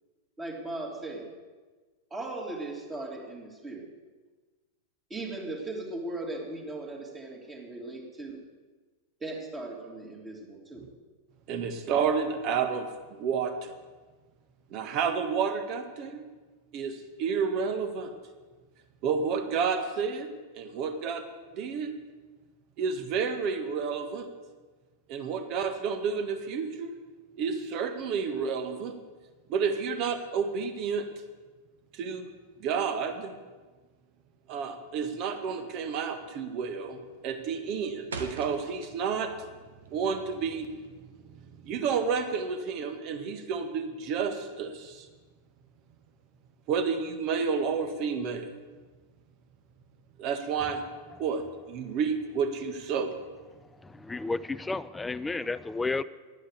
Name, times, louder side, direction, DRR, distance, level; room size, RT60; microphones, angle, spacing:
voice 1, 0.4-1.3 2.1-3.9 5.1-8.4 9.2-10.9, right 2 dB, 15° right, 0 dB, 3.0 m, -38 dB
voice 2, 11.5-13.8 14.7-16.2 16.7-18.1 19.0-20.3 20.5-21.2 21.5-21.9 22.8-24.3 25.1-27.0 27.4-29.0 29.5-31.0 31.9-32.3 32.6-33.3 34.5-39.3 39.9-40.7 41.6-45.1 46.7-48.5 50.2-50.8 51.2-51.4 51.7-53.1, right 6 dB, 40° right, 7 dB, 1.6 m, -30 dB
sound 1, 34.9-35.3 35.6-35.9 36.3-36.7 37.0-39.4 39.7-41.1, right 4 dB, 65° right, 1.5 m, -42 dB
voice 3, 54.1-56.0, left 3 dB, 10° left, 15 dB, 0.5 m, -31 dB
11.0 x 9.6 x 8.1 m, 1.3 s
figure-of-eight pair, 90°, 0 cm